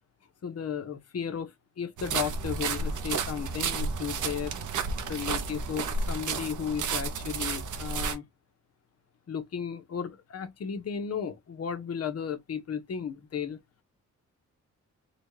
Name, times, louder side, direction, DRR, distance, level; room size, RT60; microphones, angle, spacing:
voice 1, 0.4-4.6 5.0-8.2 9.3-13.6, left 7 dB, 55° left, 1.0 m, -34 dB
sound 1, 2.0-8.2, right 4 dB, 80° right, 0.9 m, -32 dB
4.0 x 2.3 x 3.2 m
wide cardioid pair, 125°, 30 cm